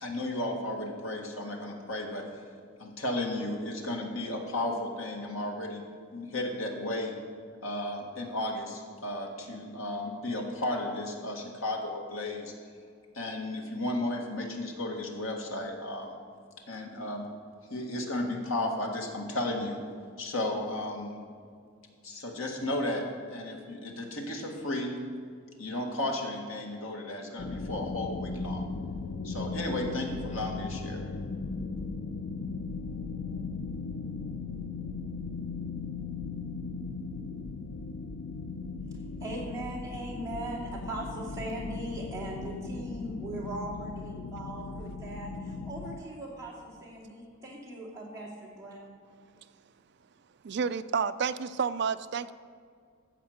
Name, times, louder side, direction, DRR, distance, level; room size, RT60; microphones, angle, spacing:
voice 1, 0.0-2.2 2.8-5.8 6.1-7.1 7.6-12.5 13.1-16.2 16.7-17.2 17.7-19.8 20.2-21.2 22.0-24.9 25.6-28.6 29.2-31.0, left 1 dB, 80° left, 1 dB, 1.8 m, -34 dB
sound 1, 27.4-46.0, left 3 dB, 50° left, 0.5 m, -37 dB
voice 2, 39.2-48.8, right 1 dB, 15° right, -5 dB, 2.5 m, -39 dB
voice 3, 50.4-52.3, right 6 dB, 50° right, 13 dB, 0.4 m, -30 dB
14.0 x 5.0 x 7.8 m, 2.2 s
head